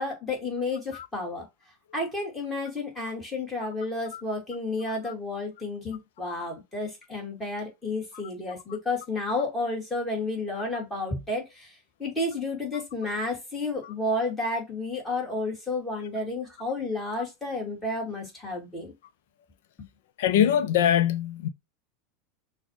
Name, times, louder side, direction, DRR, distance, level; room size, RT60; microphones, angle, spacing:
voice 1, 0.0-1.5 1.9-18.9, left 2 dB, 10° left, 2.1 m, -31 dB
voice 2, 20.2-21.5, left 10 dB, 75° left, 0.7 m, -22 dB
6.2 x 2.4 x 3.1 m
supercardioid pair, 165°, 0 cm